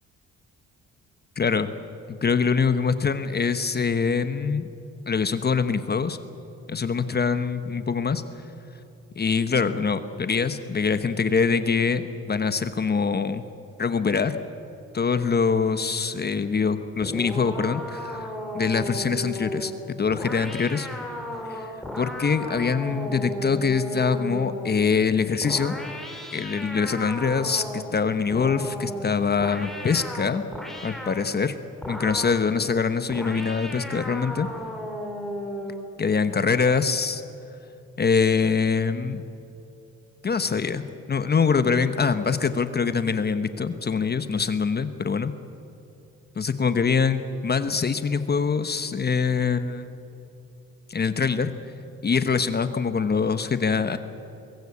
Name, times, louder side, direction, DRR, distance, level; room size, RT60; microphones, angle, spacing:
voice 1, 1.4-1.7 2.1-4.6 5.1-6.2 6.7-8.2 9.2-13.4 13.8-14.4 14.9-20.9 21.5-21.7 22.0-25.7 26.3-30.4 30.8-31.6 31.9-34.5 36.0-37.2 38.0-39.2 40.2-45.3 46.4-50.0 50.9-51.5 52.0-54.0, left 5 dB, 35° left, 10 dB, 1.1 m, -24 dB
sound 1, 17.0-24.8 25.4-27.9 28.3-31.3 31.8-32.5 33.1-35.9, left 1 dB, ahead, 4.0 m, -35 dB
23.0 x 20.0 x 8.5 m, 2.8 s
cardioid pair, 90°, 30 cm